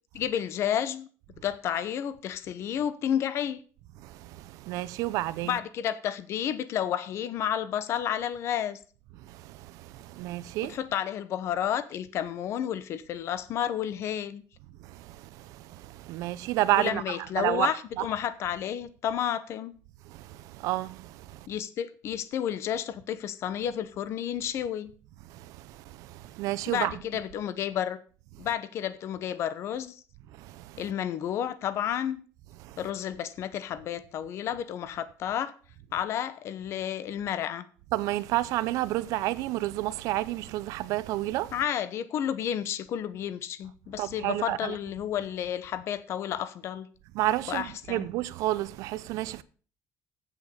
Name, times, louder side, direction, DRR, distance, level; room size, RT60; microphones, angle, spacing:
voice 1, 0.1-1.1 1.4-3.6 5.4-8.8 10.6-14.4 16.7-19.7 21.5-24.9 26.7-28.0 28.4-30.0 30.8-32.2 32.8-35.5 35.9-37.7 41.5-46.9 47.5-48.1, left 10 dB, 50° left, 0.9 m, -31 dB
voice 2, 4.0-5.6 9.2-10.8 14.8-18.1 20.0-21.5 25.3-27.0 30.3-30.8 32.6-32.8 37.9-41.5 44.0-44.8 47.1-49.4, right 16 dB, 80° right, 0.7 m, -31 dB
8.5 x 7.3 x 6.8 m
cardioid pair, 155°, 6 cm